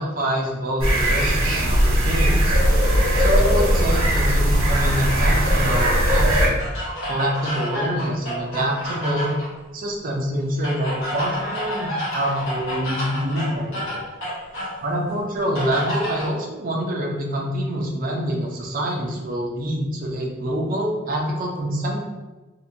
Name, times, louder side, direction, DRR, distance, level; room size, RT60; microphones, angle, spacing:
voice 1, 0.0-2.6 3.1-6.6 7.1-9.3 9.7-14.0 14.8-22.0, equal, 40° right, -2 dB, 0.5 m, -26 dB
sound 1, 0.8-6.5, equal, 85° right, 0.9 m, -18 dB
sound 2, 6.6-9.5 10.6-14.8 15.5-16.3, equal, 70° left, 1.0 m, -30 dB
2.6 x 2.2 x 2.7 m, 1.2 s
head